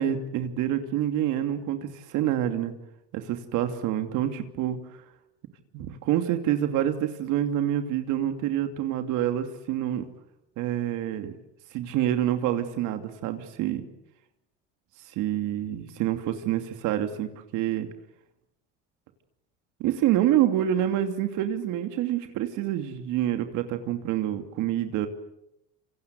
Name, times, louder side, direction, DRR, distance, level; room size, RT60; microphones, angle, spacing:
voice 1, 0.0-2.7 3.1-4.8 5.7-10.1 10.6-11.3 11.7-13.8 15.2-17.9 19.8-25.1, right 11 dB, 65° right, 7 dB, 2.8 m, -27 dB
27.0 x 25.5 x 8.1 m, 0.84 s
cardioid pair, 125°, 32 cm